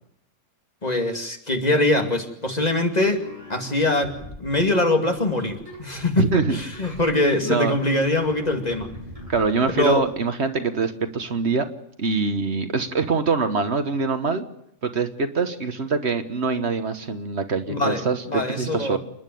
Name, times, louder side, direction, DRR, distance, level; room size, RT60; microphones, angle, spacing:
voice 1, 0.8-3.2 3.5-8.9 9.8-10.0 17.7-19.0, left 2 dB, 35° left, 4 dB, 2.5 m, -23 dB
sound 1, 2.9-10.2, equal, 25° right, 8.1 m, -42 dB
voice 2, 6.2-6.6 7.4-7.7 9.3-11.7 12.0-14.5 14.8-19.0, right 4 dB, 60° right, 8 dB, 1.6 m, -24 dB
28.5 x 10.5 x 9.2 m, 0.77 s
omnidirectional pair, 1.3 m